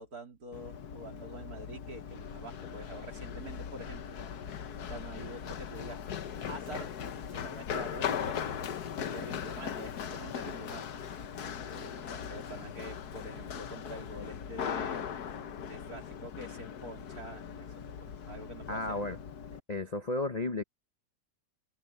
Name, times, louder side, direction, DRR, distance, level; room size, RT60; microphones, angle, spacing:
voice 1, 0.0-4.2 4.9-6.1 6.3-6.9 7.3-8.8 9.1-10.9 11.7-15.1 15.7-19.2, right 2 dB, 55° right, 3.8 m, -46 dB
Run, 0.5-19.6, left 8 dB, 65° left, 1.5 m, -39 dB
voice 2, 18.7-19.2 19.7-20.6, left 2 dB, 30° left, 0.8 m, -33 dB
omnidirectional pair, 1.9 m